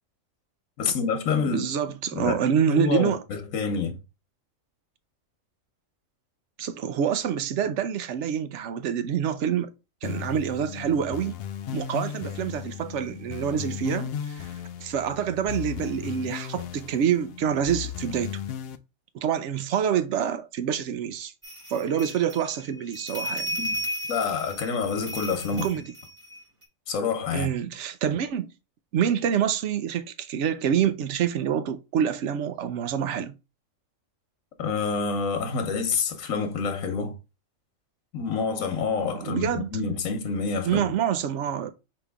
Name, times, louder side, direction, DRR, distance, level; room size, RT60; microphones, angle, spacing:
voice 1, 0.8-1.6 2.1-2.4 2.7-4.0 23.6-23.8 24.1-25.7 26.9-27.5 34.6-37.1 38.1-40.8, left 5 dB, 90° left, 1.3 m, -27 dB
voice 2, 1.4-3.2 6.6-9.7 10.0-11.3 11.7-14.5 14.8-18.4 19.1-21.3 21.7-23.6 25.5-25.8 27.3-28.5 28.9-33.3 39.1-39.7 40.7-41.7, right 8 dB, 70° right, 0.8 m, -27 dB
sound 1, 10.0-18.8, left 9 dB, 65° left, 0.6 m, -36 dB
sound 2, 21.4-26.6, equal, 25° right, 1.4 m, -35 dB
5.2 x 2.9 x 3.4 m
omnidirectional pair, 1.4 m